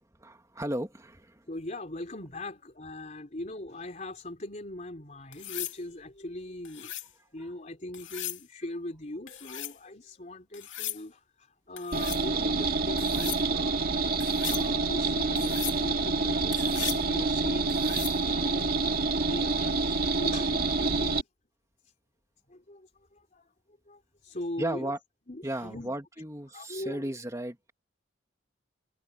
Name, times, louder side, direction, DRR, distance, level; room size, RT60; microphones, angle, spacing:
voice 1, 0.2-1.5 7.4-7.5 24.6-25.0 25.4-27.7, right 1 dB, 15° right, 2.3 m, -35 dB
voice 2, 1.5-6.9 7.3-13.8 14.4-17.8 18.2-18.7 19.2-21.2 22.5-23.5 23.9-24.9 25.3-25.9 26.5-27.1, left 1 dB, 40° left, 3.7 m, -40 dB
sound 1, 5.3-5.8 6.7-7.1 7.9-8.4 9.3-9.8 10.5-11.0 11.8-12.2 13.0-13.4 14.2-14.7 15.4-15.8 16.5-17.1 17.7-18.2 20.1-20.4, left 14 dB, 70° left, 2.5 m, -37 dB
sound 2, 11.9-21.2, right 3 dB, 50° right, 2.1 m, -27 dB
head